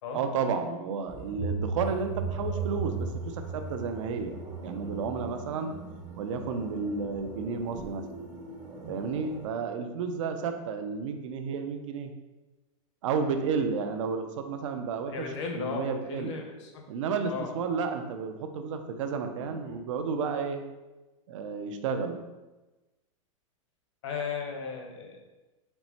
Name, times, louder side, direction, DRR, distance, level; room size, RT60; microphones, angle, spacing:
voice 1, 0.1-4.4 4.6-5.7 6.2-8.0 8.9-12.1 13.0-16.4 16.9-20.7 21.3-22.2, right 5 dB, 65° right, 7 dB, 0.5 m, -32 dB
sound 1, 1.1-9.5, right 4 dB, 20° right, 0.6 m, -37 dB
voice 2, 15.1-16.9 17.2-17.5 19.4-19.8 24.0-25.2, left 5 dB, 55° left, 3 dB, 0.8 m, -36 dB
4.5 x 2.1 x 4.1 m, 1.1 s
supercardioid pair, 170°, 18 cm